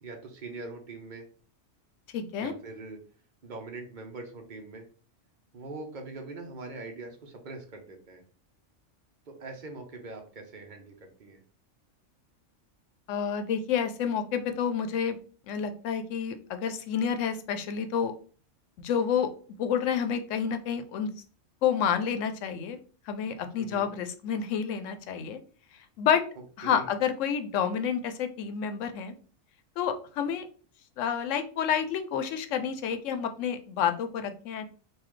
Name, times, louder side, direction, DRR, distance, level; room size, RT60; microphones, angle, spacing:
voice 1, 0.0-1.3 2.4-3.0 3.4-4.9 5.5-8.2 9.3-11.4 23.6-23.9 26.6-26.9, right 3 dB, 45° right, 3 dB, 0.9 m, -42 dB
voice 2, 2.1-2.5 13.1-15.2 15.5-18.1 18.8-19.3 19.6-21.1 21.6-22.8 23.1-25.4 26.0-26.2 26.6-29.1 29.8-30.4 31.0-34.7, left 7 dB, 85° left, 8 dB, 0.9 m, -29 dB
3.9 x 2.6 x 3.1 m, 0.40 s
omnidirectional pair, 1.3 m